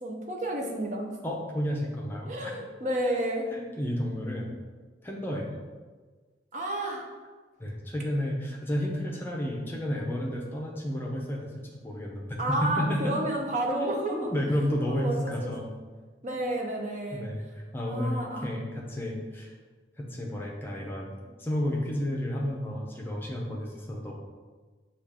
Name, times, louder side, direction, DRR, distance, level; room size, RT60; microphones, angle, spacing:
voice 1, 0.0-1.2 2.3-3.5 6.5-7.1 12.4-14.3 14.9-15.5 16.2-17.3 17.8-18.5, right 1 dB, 40° right, 1 dB, 0.6 m, -31 dB
voice 2, 1.2-2.5 3.5-4.5 5.0-5.5 7.6-13.2 14.1-15.7 16.3-16.4 17.1-19.5 20.0-21.1 21.4-24.1, equal, 10° left, -2 dB, 0.6 m, -31 dB
6.3 x 2.4 x 3.5 m, 1.4 s
head